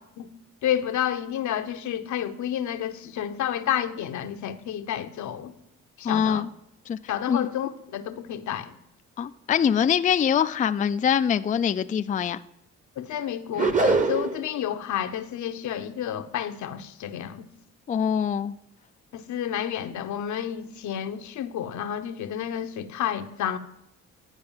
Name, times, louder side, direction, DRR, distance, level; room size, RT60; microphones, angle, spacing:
voice 1, 0.6-5.5 6.0-6.4 7.1-8.7 13.0-17.5 19.1-23.6, left 10 dB, 75° left, 0.9 m, -30 dB
voice 2, 6.0-6.5 6.9-7.0 7.3-7.5 9.2-12.4 17.9-18.5, left 8 dB, 25° left, 0.4 m, -23 dB
sound 1, 13.6-14.5, right 3 dB, 25° right, 1.0 m, -22 dB
10.5 x 4.8 x 7.2 m
cardioid pair, 90°, 30 cm